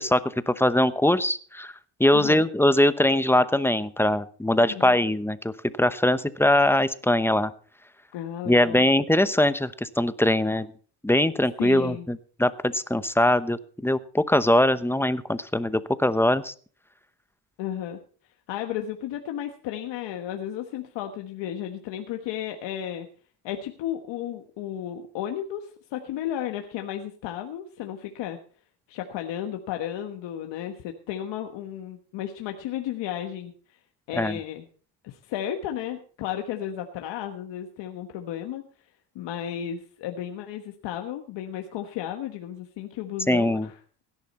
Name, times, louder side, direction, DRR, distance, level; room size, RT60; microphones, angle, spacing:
voice 1, 0.0-1.7 2.0-7.5 8.5-10.7 11.0-16.5 34.2-34.4 43.3-43.7, left 1 dB, 5° left, 14 dB, 0.9 m, -22 dB
voice 2, 2.1-2.4 4.7-4.9 8.1-8.9 11.6-12.1 17.6-18.0 18.5-23.1 23.4-28.4 28.9-33.8 34.1-34.7 35.0-38.6 39.1-43.8, left 10 dB, 90° left, 5 dB, 1.4 m, -33 dB
17.0 x 10.5 x 4.3 m, 0.43 s
cardioid pair, 90°, 42 cm